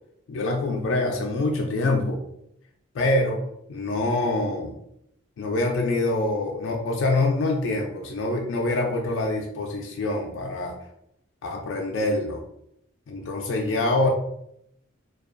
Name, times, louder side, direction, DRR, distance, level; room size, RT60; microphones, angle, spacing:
voice 1, 0.3-2.2 2.9-3.4 3.7-4.8 5.4-10.8 11.4-12.4 13.1-14.1, left 2 dB, 60° left, 1 dB, 0.3 m, -25 dB
2.5 x 2.2 x 2.4 m, 0.77 s
head